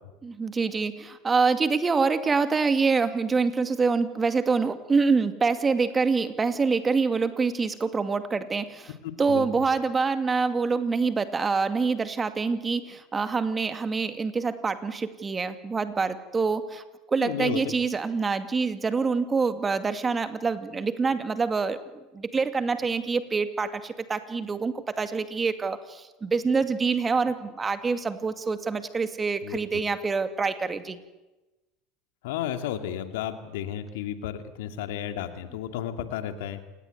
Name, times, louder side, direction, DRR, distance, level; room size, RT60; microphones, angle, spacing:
voice 1, 0.2-8.9 9.2-16.8 17.1-21.8 22.1-31.0, right 4 dB, 25° right, 10 dB, 2.3 m, -26 dB
voice 2, 17.2-17.6 29.4-29.6 32.2-36.6, left 10 dB, 70° left, 8 dB, 2.5 m, -32 dB
28.5 x 18.5 x 9.4 m, 1.1 s
hypercardioid pair, 80°, 0 cm